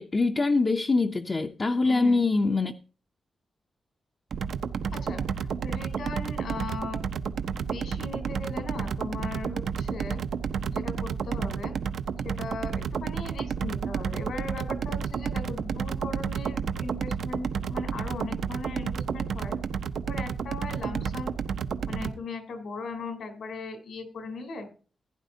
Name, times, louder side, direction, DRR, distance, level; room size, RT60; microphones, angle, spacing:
voice 1, 0.0-2.7, left 3 dB, 30° left, 0.6 m, -24 dB
voice 2, 1.8-2.2 4.9-7.0 7.6-10.2 10.7-11.8 12.2-19.6 20.1-21.4 21.9-24.7, left 3 dB, 80° left, 3.4 m, -38 dB
sound 1, 4.3-22.1, right 6 dB, 80° right, 0.7 m, -31 dB
15.5 x 9.8 x 2.7 m
wide cardioid pair, 165°, 0 cm